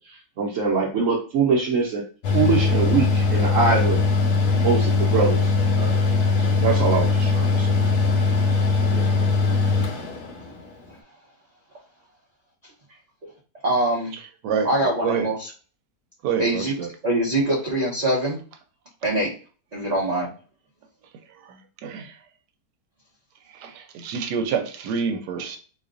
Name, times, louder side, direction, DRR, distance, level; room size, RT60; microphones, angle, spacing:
voice 1, 0.4-2.0 2.3-4.0 4.6-5.4 5.8-7.7 8.2-8.3 8.9-9.0, right 4 dB, 60° right, -3 dB, 1.0 m, -23 dB
Mechanical fan, 2.2-10.7, left 4 dB, 75° left, 1.2 m, -21 dB
voice 2, 13.6-14.1 14.6-15.5 16.4-16.8 17.0-18.4 19.0-19.3 19.7-20.3, right 1 dB, 40° right, -5 dB, 0.6 m, -23 dB
voice 3, 16.2-16.9 21.8-22.1 23.6-23.7 23.9-25.6, right 6 dB, 90° right, 6 dB, 1.2 m, -26 dB
4.0 x 2.8 x 2.5 m, 0.38 s
omnidirectional pair, 1.7 m